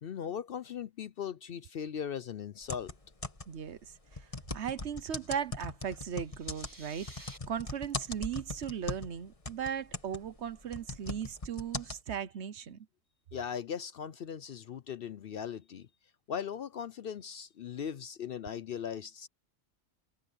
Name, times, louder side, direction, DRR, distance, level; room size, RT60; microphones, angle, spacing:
voice 1, 0.0-2.9 13.3-15.9 16.3-19.3, left 8 dB, 55° left, 0.7 m, -39 dB
sound 1, 2.6-3.7 4.1-9.2 9.5-12.0, left 2 dB, 25° left, 1.9 m, -40 dB
voice 2, 3.5-4.3 4.5-12.9, right 8 dB, 65° right, 1.1 m, -37 dB
sound 2, 6.1-7.4, right 1 dB, 15° right, 1.8 m, -52 dB
omnidirectional pair, 1.3 m